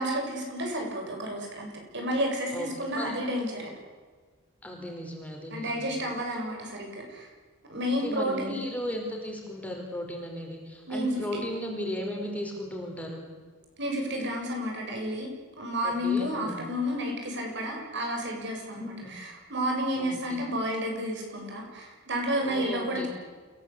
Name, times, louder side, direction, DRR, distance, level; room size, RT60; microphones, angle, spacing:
voice 1, 0.0-3.7 5.5-7.3 7.7-8.7 10.9-11.1 13.8-15.3 15.6-23.1, equal, 60° right, 1 dB, 7.4 m, -31 dB
voice 2, 2.5-3.1 4.6-6.0 8.0-13.2 15.8-16.6 18.7-19.1 20.0-20.4 22.4-23.1, equal, 5° left, 1 dB, 4.7 m, -36 dB
28.5 x 17.5 x 8.5 m, 1.5 s
head